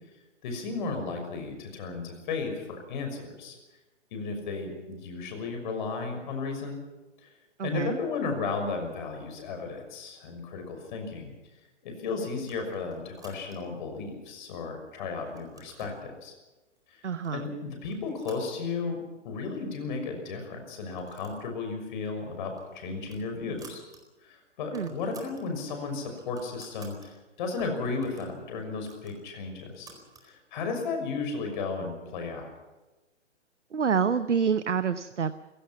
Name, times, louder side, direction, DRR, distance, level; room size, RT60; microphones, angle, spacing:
voice 1, 0.4-3.6 4.1-6.8 7.2-7.3 7.6-11.3 11.8-16.3 16.9-17.0 17.3-23.8 24.2-29.9 30.2-32.5, left 4 dB, 40° left, 5 dB, 6.1 m, -34 dB
voice 2, 7.6-8.0 17.0-17.5 24.7-25.0 33.7-35.4, right 6 dB, 75° right, 12 dB, 1.0 m, -27 dB
sound 1, 12.5-13.8 14.4-14.9 15.2-16.0 16.8-16.9 17.2-17.5 17.8-19.1 19.4-19.5 19.7-19.8 20.6-21.5 21.8-22.0 22.4-24.0 24.3-24.4 24.6-25.5 25.9-27.1 27.6-30.3, right 3 dB, 10° right, 4.3 m, -53 dB
29.5 x 17.0 x 5.9 m, 1.1 s
figure-of-eight pair, 125°, 36 cm